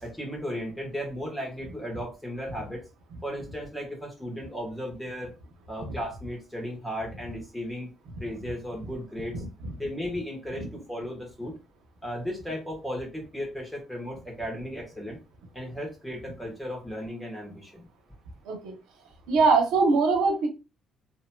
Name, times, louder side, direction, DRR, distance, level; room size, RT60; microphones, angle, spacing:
voice 1, 0.0-2.8 3.2-5.3 5.7-7.9 8.2-9.3 9.8-11.5 12.0-15.2 15.5-17.9, equal, 5° left, -1 dB, 1.3 m, -35 dB
voice 2, 19.3-20.5, right 4 dB, 90° right, 2 dB, 0.8 m, -22 dB
3.0 x 2.8 x 2.2 m, 0.29 s
cardioid pair, 120°, 0 cm